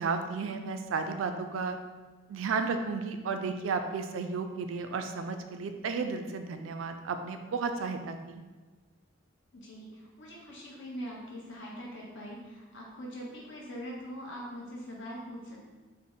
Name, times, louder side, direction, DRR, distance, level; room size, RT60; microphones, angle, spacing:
voice 1, 0.0-1.8 2.3-8.4, right 4 dB, 75° right, 7 dB, 0.3 m, -33 dB
voice 2, 9.5-15.6, equal, 65° left, -3 dB, 0.9 m, -42 dB
3.9 x 2.1 x 3.6 m, 1.3 s
head